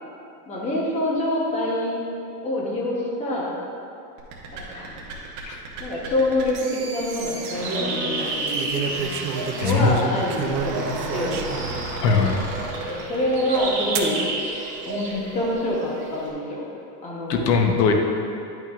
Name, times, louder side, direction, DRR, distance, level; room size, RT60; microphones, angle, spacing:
voice 1, 0.5-2.0 2.4-3.5 4.5-4.9 5.8-8.7 9.6-11.4 12.9-14.2 14.8-16.7 17.0-17.5, left 1 dB, 15° left, -4 dB, 0.8 m, -26 dB
sound 1, 4.2-13.9, right 3 dB, 35° right, 1.0 m, -35 dB
sound 2, 6.8-7.2 8.5-11.8 12.4-12.5 14.0-14.2 15.1-15.5, right 6 dB, 70° right, 0.8 m, -30 dB
sound 3, 7.0-16.3, right 2 dB, 15° right, 1.5 m, -32 dB
voice 2, 9.6-10.0 12.0-12.4 17.3-17.9, left 5 dB, 85° left, 3 dB, 1.0 m, -20 dB
10.5 x 6.2 x 2.4 m, 2.7 s
supercardioid pair, 165°, 48 cm